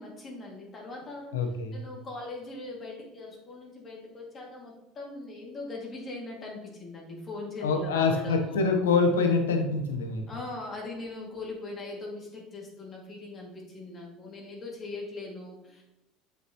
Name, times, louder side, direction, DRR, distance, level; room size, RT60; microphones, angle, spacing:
voice 1, 0.0-1.3 1.7-8.7 10.3-15.8, left 2 dB, 35° left, -1 dB, 2.5 m, -40 dB
voice 2, 1.3-1.8 7.6-10.2, left 4 dB, 90° left, 5 dB, 1.0 m, -25 dB
7.8 x 5.6 x 3.1 m, 0.95 s
hypercardioid pair, 85°, 0 cm